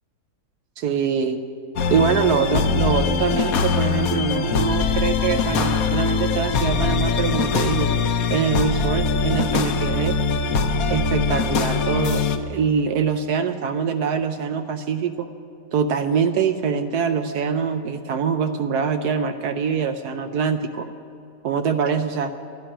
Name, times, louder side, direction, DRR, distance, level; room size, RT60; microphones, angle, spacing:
voice 1, 0.8-1.4 1.9-7.9 8.3-10.1 10.9-12.2 12.5-15.3 15.7-20.9 21.4-22.3, right 6 dB, 70° right, 8 dB, 1.1 m, -23 dB
sound 1, 1.8-12.4, left 5 dB, 60° left, 1.1 m, -22 dB
11.5 x 10.5 x 9.9 m, 2.7 s
omnidirectional pair, 1.9 m